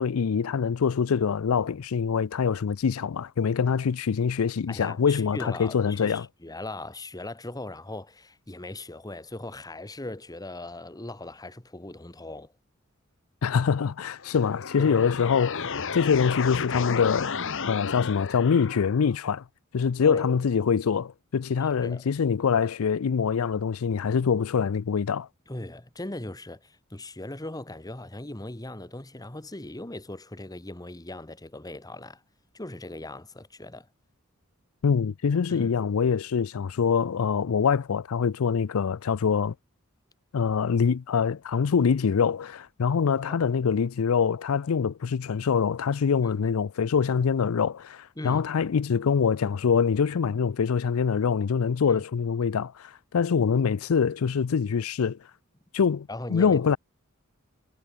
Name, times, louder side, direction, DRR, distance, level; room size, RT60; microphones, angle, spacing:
voice 1, 0.0-6.3 13.4-17.3 17.7-19.4 19.7-25.3 34.8-39.5 40.3-55.2 55.7-56.8, left 6 dB, 85° left, 0.5 m, -24 dB
voice 2, 4.7-12.5 14.8-15.2 20.0-20.3 21.8-22.0 25.5-32.2 32.5-33.9 35.5-35.7 43.2-43.5 46.2-46.3 48.2-48.4 51.9-52.0 56.1-56.8, left 2 dB, 20° left, 1.5 m, -39 dB
sound 1, 14.2-19.2, left 5 dB, 65° left, 1.2 m, -32 dB
head